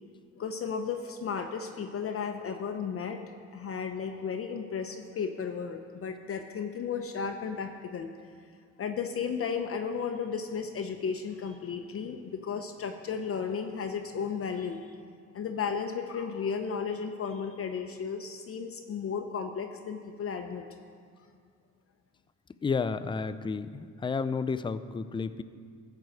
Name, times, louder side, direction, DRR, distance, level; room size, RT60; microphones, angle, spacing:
voice 1, 0.4-3.2 3.5-8.1 8.8-15.0 15.3-20.7, left 6 dB, 50° left, 5 dB, 0.7 m, -34 dB
voice 2, 22.6-25.4, left 5 dB, 15° left, 12 dB, 0.4 m, -31 dB
13.5 x 4.8 x 7.7 m, 2.1 s
cardioid pair, 90°, 30 cm